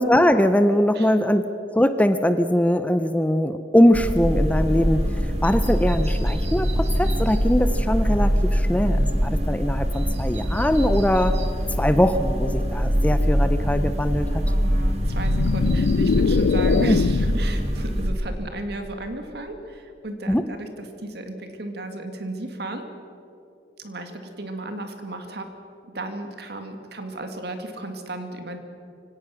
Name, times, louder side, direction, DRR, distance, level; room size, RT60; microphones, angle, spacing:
voice 1, 0.0-1.5 1.7-11.4 11.8-14.4 16.9-17.0 20.3-20.4, left 1 dB, 10° left, 10 dB, 0.6 m, -21 dB
sound 1, 3.9-18.1, equal, 35° right, 1.9 m, -23 dB
voice 2, 14.5-22.9 23.8-25.5 25.8-28.6, right 2 dB, 60° right, 6 dB, 2.0 m, -34 dB
sound 2, 15.0-17.5, left 5 dB, 90° left, 0.4 m, -22 dB
24.5 x 17.0 x 6.2 m, 2.7 s
head